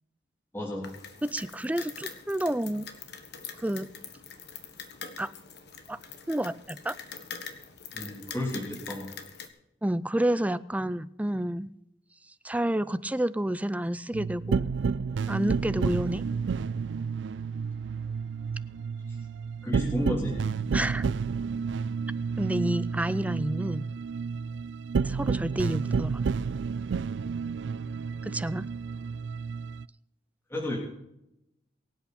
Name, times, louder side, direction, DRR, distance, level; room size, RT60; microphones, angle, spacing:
voice 1, 0.5-0.9 7.9-9.1 19.6-20.4 30.5-30.8, left 1 dB, 15° left, -5 dB, 3.4 m, -32 dB
sound 1, 0.8-9.5, left 6 dB, 65° left, 1.7 m, -44 dB
voice 2, 1.2-2.9 3.6-3.9 5.2-5.3 5.9-6.0 6.3-7.0 9.8-11.7 12.4-14.7 15.3-16.3 20.7-21.0 22.4-23.8 25.0-26.2 28.2-28.7, right 1 dB, 10° right, 15 dB, 0.5 m, -29 dB
sound 2, 14.1-29.9, right 5 dB, 70° right, 0.4 m, -31 dB
23.5 x 8.2 x 4.3 m, 0.84 s
head